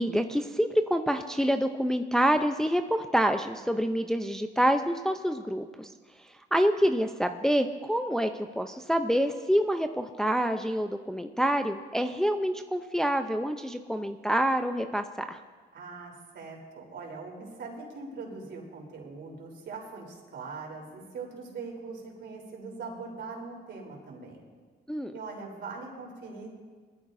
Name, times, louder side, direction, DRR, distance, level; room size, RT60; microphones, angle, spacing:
voice 1, 0.0-5.9 6.2-15.4 24.9-25.1, equal, 5° left, 6 dB, 0.6 m, -27 dB
voice 2, 15.7-24.4 25.1-26.5, right 4 dB, 65° right, -1 dB, 3.7 m, -41 dB
20.5 x 14.5 x 2.7 m, 1.5 s
cardioid pair, 90°, 20 cm